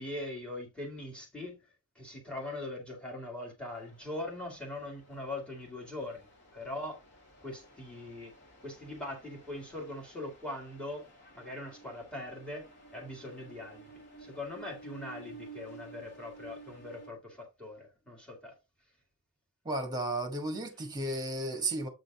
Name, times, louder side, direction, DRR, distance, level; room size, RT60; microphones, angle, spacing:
voice 1, 0.0-1.6 2.0-7.0 7.4-8.3 8.6-11.0 11.3-12.6 12.9-18.6, left 1 dB, 5° left, 2.1 m, -41 dB
sound 1, 3.7-17.1, right 3 dB, 50° left, 2.4 m, -53 dB
voice 2, 19.6-21.9, right 2 dB, 20° right, 1.4 m, -33 dB
8.0 x 3.9 x 3.5 m
head